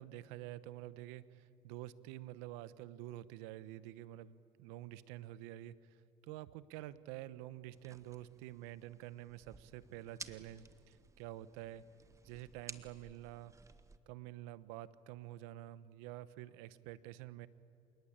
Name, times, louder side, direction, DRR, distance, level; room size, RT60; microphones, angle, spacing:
voice 1, 0.0-5.7 6.2-11.8 12.2-13.5 14.1-17.5, right 14 dB, 85° right, 16 dB, 0.9 m, -48 dB
sound 1, 7.7-14.0, right 4 dB, 20° right, 1.4 m, -55 dB
28.5 x 18.5 x 8.9 m, 2.7 s
supercardioid pair, 90°, 15 cm